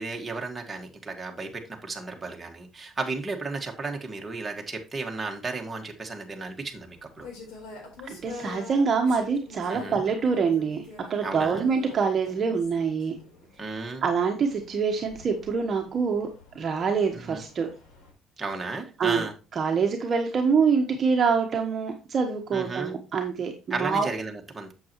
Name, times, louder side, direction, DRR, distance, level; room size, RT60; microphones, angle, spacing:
voice 1, 0.0-7.3 9.7-10.0 11.2-11.7 13.6-14.0 17.1-17.4 18.4-19.3 22.5-23.0 23.7-24.7, right 3 dB, 15° right, 1 dB, 1.7 m, -34 dB
sound 1, 6.7-18.1, left 3 dB, 85° left, 4.2 m, -47 dB
voice 2, 8.0-13.1 14.0-16.3 16.5-17.7 19.0-19.2 19.6-24.1, right 5 dB, 35° right, 3 dB, 1.1 m, -25 dB
8.4 x 7.4 x 2.9 m, 0.31 s
cardioid pair, 145°, 0 cm